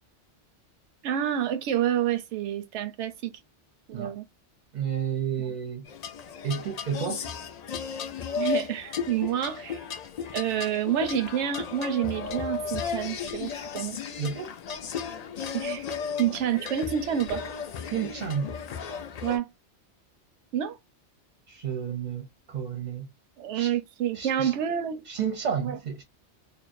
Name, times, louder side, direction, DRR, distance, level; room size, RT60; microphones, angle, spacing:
voice 1, 1.0-3.3 3.9-4.3 8.3-9.8 10.3-14.0 15.5-15.9 16.2-17.4 19.2-19.5 20.5-20.8 23.4-25.1 25.6-25.8, right 10 dB, 85° right, 0.9 m, -28 dB
voice 2, 4.7-5.8 6.4-7.3 14.2-14.5 17.9-18.5 21.5-23.1 23.5-23.7 24.1-24.6 25.1-26.0, right 7 dB, 50° right, 0.6 m, -31 dB
sound 1, 5.9-19.4, left 6 dB, 60° left, 0.4 m, -35 dB
2.5 x 2.0 x 2.4 m
omnidirectional pair, 1.2 m